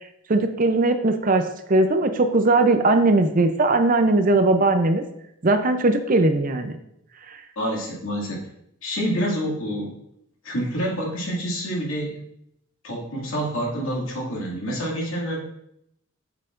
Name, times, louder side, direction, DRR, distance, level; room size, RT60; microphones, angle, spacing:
voice 1, 0.3-5.0 5.4-6.8, right 2 dB, 40° right, 8 dB, 0.6 m, -19 dB
voice 2, 7.6-8.4 8.8-10.0 10.4-12.3 12.8-15.4, equal, 75° left, -3 dB, 2.3 m, -27 dB
8.1 x 7.7 x 2.5 m, 0.77 s
head